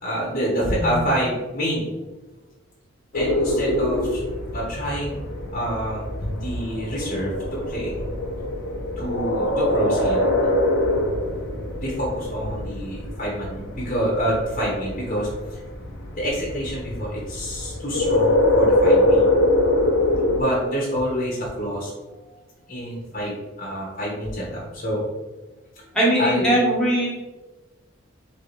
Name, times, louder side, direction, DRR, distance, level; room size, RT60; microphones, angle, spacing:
voice 1, 0.0-1.9 3.1-4.2 4.5-5.2 5.5-7.3 7.7-8.0 9.0-10.3 11.8-15.6 16.1-19.3 20.3-21.9 22.7-25.0 25.8-26.6, equal, 35° left, -5 dB, 1.1 m, -27 dB
sound 1, 3.1-20.4, left 1 dB, 80° left, 0.8 m, -24 dB
voice 2, 25.9-27.1, right 1 dB, 5° left, -7 dB, 1.4 m, -20 dB
4.0 x 3.7 x 3.4 m, 1.2 s
head